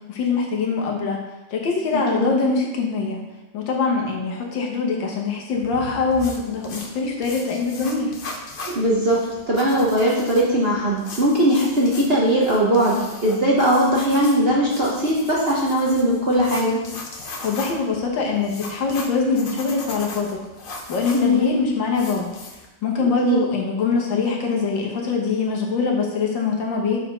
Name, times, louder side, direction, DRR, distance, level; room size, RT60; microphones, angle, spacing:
voice 1, 0.1-1.2 1.5-3.2 3.5-8.1 17.4-22.3 22.8-27.0, left 4 dB, 70° left, 0 dB, 1.8 m, -23 dB
voice 2, 1.9-2.4 8.7-16.8 21.1-21.5 23.2-23.4, equal, 40° right, -5 dB, 0.9 m, -20 dB
sound 1, 5.5-22.7, left 3 dB, 90° left, 0.4 m, -38 dB
5.6 x 4.9 x 5.5 m, 1.0 s
omnidirectional pair, 2.1 m